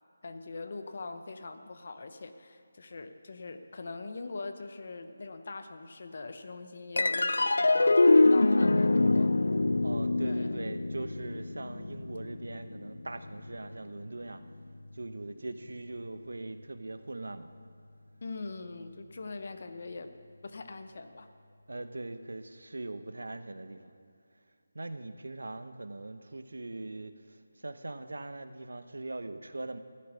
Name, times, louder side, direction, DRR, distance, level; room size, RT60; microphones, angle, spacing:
voice 1, 0.2-9.3 10.2-10.6 18.2-20.1 20.4-21.3, left 3 dB, 35° left, 8 dB, 0.8 m, -42 dB
sound 1, 7.0-13.6, left 2 dB, 85° left, 0.4 m, -25 dB
voice 2, 9.8-14.4 14.9-17.5 20.9-21.0 21.7-23.9 24.7-29.8, right 2 dB, 80° right, 9 dB, 1.0 m, -41 dB
14.5 x 7.9 x 9.8 m, 2.3 s
figure-of-eight pair, 180°, 0 cm